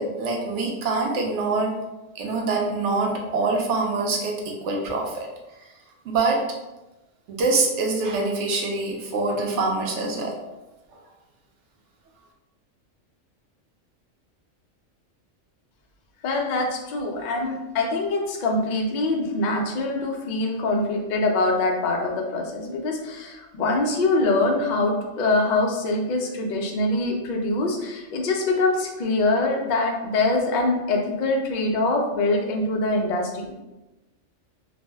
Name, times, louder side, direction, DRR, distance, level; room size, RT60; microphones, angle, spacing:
voice 1, 0.0-1.8 2.2-5.3 6.1-6.4 7.3-10.3, right 3 dB, 70° right, 0 dB, 0.8 m, -25 dB
voice 2, 16.2-33.6, left 2 dB, 80° left, 1 dB, 0.4 m, -24 dB
2.5 x 2.0 x 3.3 m, 1.0 s
omnidirectional pair, 1.3 m